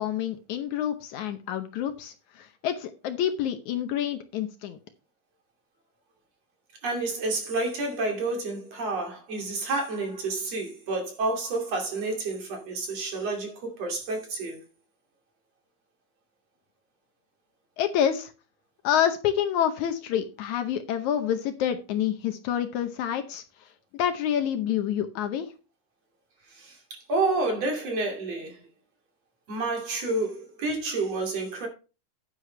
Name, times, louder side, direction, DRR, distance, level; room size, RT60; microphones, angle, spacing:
voice 1, 0.0-4.8 17.8-18.3 18.8-23.4 23.9-25.5, left 10 dB, 70° left, 2.1 m, -28 dB
voice 2, 6.8-14.6 26.5-28.6 29.5-31.7, right 2 dB, 50° right, 3.6 m, -29 dB
9.8 x 9.6 x 3.3 m
omnidirectional pair, 3.7 m